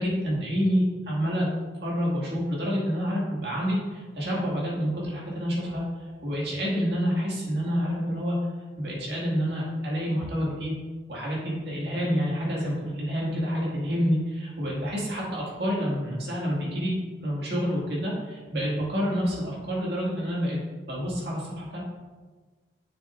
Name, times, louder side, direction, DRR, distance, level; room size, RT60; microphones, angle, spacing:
voice 1, 0.0-1.5 1.8-8.4 8.8-10.7 11.1-17.0 17.2-20.6 20.9-21.8, equal, 65° right, -5 dB, 2.1 m, -28 dB
6.8 x 6.7 x 2.5 m, 1.3 s
head